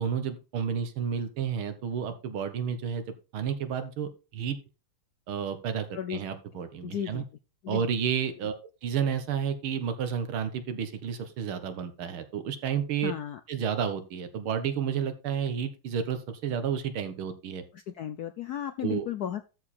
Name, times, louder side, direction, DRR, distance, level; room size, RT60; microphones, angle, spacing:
voice 1, 0.0-3.1 3.3-4.6 5.3-7.2 7.7-8.6 8.8-13.1 13.5-17.6 18.8-19.1, right 7 dB, 75° right, 9 dB, 2.1 m, -31 dB
voice 2, 6.8-7.2 7.6-7.8 13.0-13.4 17.7-19.5, left 10 dB, 75° left, 10 dB, 0.9 m, -34 dB
13.0 x 4.9 x 4.3 m, 0.31 s
omnidirectional pair, 2.3 m